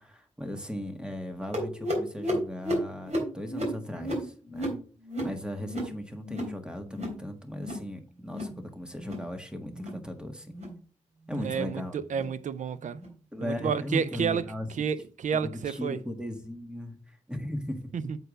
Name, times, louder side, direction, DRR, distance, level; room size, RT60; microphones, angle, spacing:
voice 1, 0.0-4.8 5.2-10.5 11.3-12.0 13.3-14.7 15.3-17.9, left 1 dB, 5° right, 1.6 m, -37 dB
sound 1, 1.5-6.6 6.8-7.2 7.5-7.9 8.2-8.6 8.9-9.3 9.7-10.0 10.5-10.8 11.3-11.5 12.1-12.3 13.0-13.1 13.8-13.9 14.7-14.8, equal, 60° right, 3.4 m, -33 dB
voice 2, 11.3-13.0 13.4-14.5 14.7-16.0 17.9-18.2, right 6 dB, 75° right, 0.5 m, -30 dB
8.0 x 4.6 x 5.0 m
wide cardioid pair, 85°, 13 cm